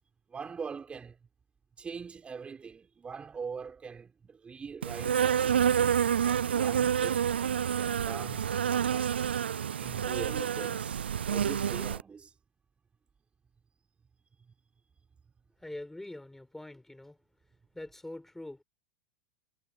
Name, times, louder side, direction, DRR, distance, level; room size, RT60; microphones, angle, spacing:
voice 1, 0.3-1.2 1.8-5.9 6.2-9.2 9.8-12.3, right 5 dB, 20° right, 4.6 m, -43 dB
Insect, 4.8-12.0, right 8 dB, 75° right, 0.4 m, -28 dB
voice 2, 15.6-17.2 17.7-18.6, left 1 dB, 5° left, 6.4 m, -44 dB
figure-of-eight pair, 90°, 6 cm